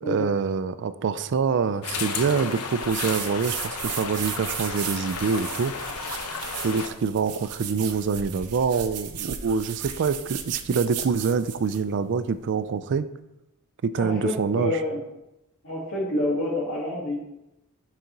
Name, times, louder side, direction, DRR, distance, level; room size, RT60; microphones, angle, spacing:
voice 1, 0.0-5.7 6.6-13.1 13.8-14.8, right 5 dB, 55° right, 13 dB, 0.4 m, -25 dB
sound 1, 1.8-6.9, left 5 dB, 85° left, 0.8 m, -33 dB
sound 2, 2.8-11.9, right 9 dB, 90° right, 0.7 m, -36 dB
voice 2, 14.0-15.0 15.6-17.2, left 1 dB, 65° left, -6 dB, 1.9 m, -28 dB
10.5 x 4.1 x 3.9 m, 0.89 s
head